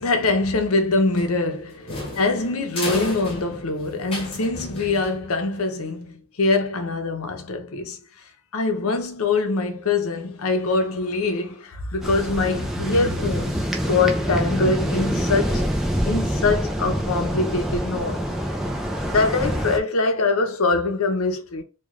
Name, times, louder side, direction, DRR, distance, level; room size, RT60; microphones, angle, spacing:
voice 1, 0.0-8.0 8.5-15.7 16.1-18.2 19.1-21.6, left 3 dB, 80° left, 0.7 m, -23 dB
sound 1, 1.1-5.6, left 2 dB, 25° left, 1.2 m, -33 dB
sound 2, 12.0-19.8, equal, ahead, 0.4 m, -26 dB
3.2 x 2.3 x 3.6 m
head